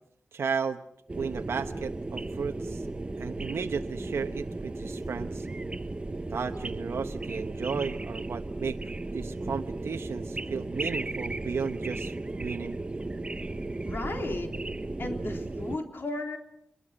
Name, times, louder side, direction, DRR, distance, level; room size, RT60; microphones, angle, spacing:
voice 1, 0.3-0.8 1.2-2.8 3.2-5.5 6.3-8.8 9.1-12.8, right 5 dB, 85° right, 6 dB, 1.0 m, -34 dB
sound 1, 1.1-15.8, right 2 dB, 25° right, 1.2 m, -35 dB
voice 2, 13.9-14.5 15.0-16.4, left 2 dB, 60° left, 3 dB, 3.9 m, -34 dB
26.5 x 22.5 x 6.5 m, 0.74 s
wide cardioid pair, 90°, 4 cm